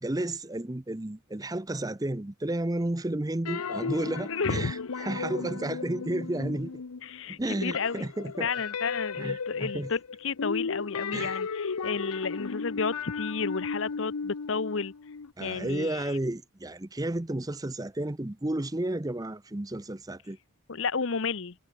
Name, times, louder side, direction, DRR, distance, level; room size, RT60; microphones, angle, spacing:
voice 1, 0.0-6.7 7.3-8.5 9.2-9.9 11.1-11.4 15.4-20.4, right 1 dB, 15° right, 0.6 m, -32 dB
sound 1, 3.4-7.2 7.5-15.3, left 5 dB, 90° left, 0.8 m, -35 dB
voice 2, 4.3-4.7 7.0-8.0 8.4-14.9 15.4-16.1 20.7-21.5, left 5 dB, 60° left, 0.8 m, -32 dB
head